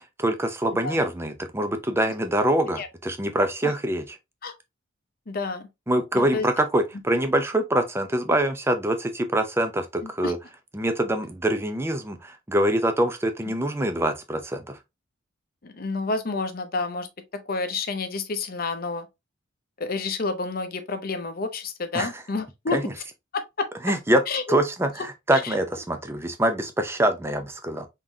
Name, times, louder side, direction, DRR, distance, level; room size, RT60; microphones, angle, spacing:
voice 1, 0.2-4.0 5.9-10.4 10.7-14.8 21.9-22.1 22.7-22.8 23.8-24.2 24.5-27.9, right 1 dB, 10° right, 0.5 m, -24 dB
voice 2, 5.3-5.7 6.1-6.5 10.0-10.3 15.6-19.1 19.8-22.8 23.3-23.7 24.3-24.4 25.3-25.5, left 3 dB, 45° left, 0.7 m, -29 dB
3.7 x 3.6 x 2.7 m
head